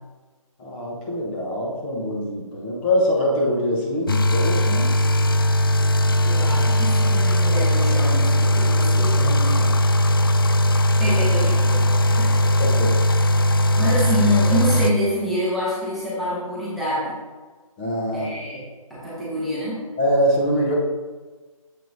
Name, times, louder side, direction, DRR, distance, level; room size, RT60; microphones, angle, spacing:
voice 1, 0.6-4.9 12.6-13.0 17.8-18.3 20.0-20.7, equal, 15° left, -3 dB, 1.1 m, -23 dB
sound 1, 4.1-14.9, equal, 40° left, 0.4 m, -19 dB
voice 2, 6.1-9.7 11.0-12.4 13.8-17.1 18.1-18.7 19.0-19.8, equal, ahead, -11 dB, 1.3 m, -26 dB
7.5 x 7.2 x 2.8 m, 1.3 s
figure-of-eight pair, 150°, 18 cm